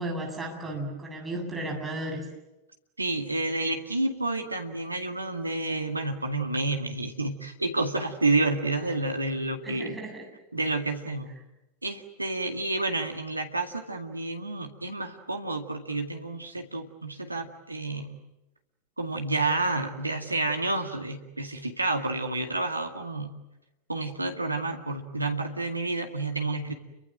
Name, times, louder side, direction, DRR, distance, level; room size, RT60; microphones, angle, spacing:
voice 1, 0.0-2.3 9.6-10.2, right 1 dB, 10° right, 1 dB, 7.6 m, -34 dB
voice 2, 3.0-10.0 10.5-11.3 11.8-18.2 19.0-23.3 23.9-26.7, right 2 dB, 85° right, 4 dB, 2.0 m, -29 dB
30.0 x 24.5 x 7.6 m, 0.98 s
figure-of-eight pair, 90°, 0 cm